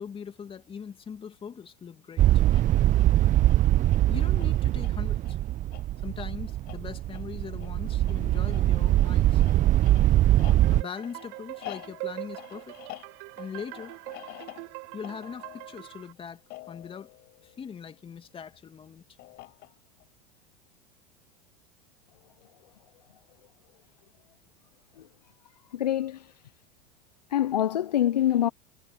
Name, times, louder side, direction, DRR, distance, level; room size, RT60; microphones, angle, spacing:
voice 1, 0.0-2.3 4.1-5.4 6.0-9.4 10.7-12.8 13.4-13.9 14.9-16.4 16.7-17.1 17.4-19.0, left 7 dB, 25° left, 2.7 m, -41 dB
sound 1, 2.2-10.8, right 14 dB, 40° right, 0.8 m, -22 dB
sound 2, 2.4-18.2 19.2-20.0, left 19 dB, 55° left, 6.2 m, -48 dB
sound 3, 10.6-16.1, right 34 dB, 60° right, 7.3 m, -42 dB
voice 2, 25.7-26.3 27.3-28.5, left 11 dB, 90° left, 0.7 m, -25 dB
hypercardioid pair, 90°, 20 cm